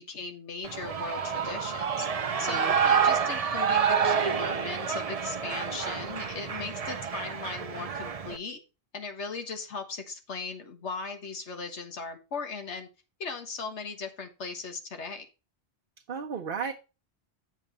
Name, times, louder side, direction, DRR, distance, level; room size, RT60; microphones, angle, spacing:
voice 1, 0.0-2.1 2.4-8.6 8.9-12.9 13.2-15.3, left 4 dB, 85° left, 6 dB, 1.7 m, -38 dB
Shout / Cheering, 0.6-8.4, right 6 dB, 40° right, 0.7 m, -28 dB
voice 2, 2.4-2.8 16.1-16.7, right 6 dB, 55° right, 3 dB, 1.0 m, -34 dB
8.4 x 7.3 x 4.0 m, 0.30 s
omnidirectional pair, 1.1 m